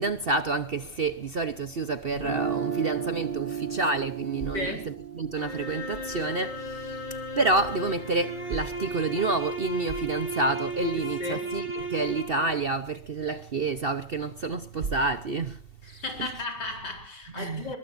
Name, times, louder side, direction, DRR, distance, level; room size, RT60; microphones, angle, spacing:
voice 1, 0.0-16.3 17.4-17.7, right 3 dB, 45° right, 0.8 m, -29 dB
Guitar, 2.1-8.1, right 7 dB, 25° right, 5.6 m, -35 dB
voice 2, 4.5-4.9 11.0-11.5 15.8-17.8, left 2 dB, 75° left, 5.2 m, -35 dB
sound 1, 5.3-12.6, right 1 dB, 25° left, 4.9 m, -35 dB
22.5 x 22.0 x 2.6 m
omnidirectional pair, 1.9 m